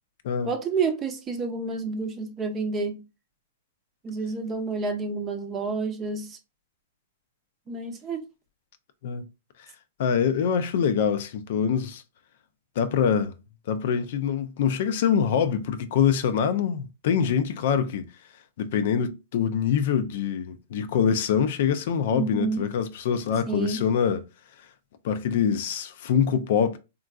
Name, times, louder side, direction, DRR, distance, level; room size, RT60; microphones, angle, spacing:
voice 1, 0.4-3.0 4.0-6.4 7.7-8.2 22.1-22.6 23.5-23.8, right 4 dB, 20° right, 0.6 m, -29 dB
voice 2, 10.0-12.0 12.8-13.3 13.7-18.1 18.6-24.2 25.0-26.8, left 7 dB, 60° left, 0.4 m, -24 dB
3.7 x 2.5 x 2.3 m
hypercardioid pair, 135°, 0 cm